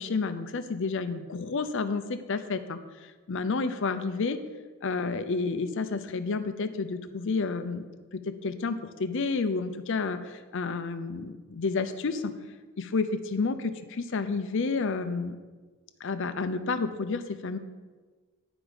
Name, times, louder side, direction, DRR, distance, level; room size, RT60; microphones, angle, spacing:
voice 1, 0.0-4.4 4.8-12.3 12.8-15.4 16.0-17.6, left 4 dB, 60° left, 10 dB, 0.5 m, -30 dB
9.8 x 4.9 x 5.0 m, 1.4 s
head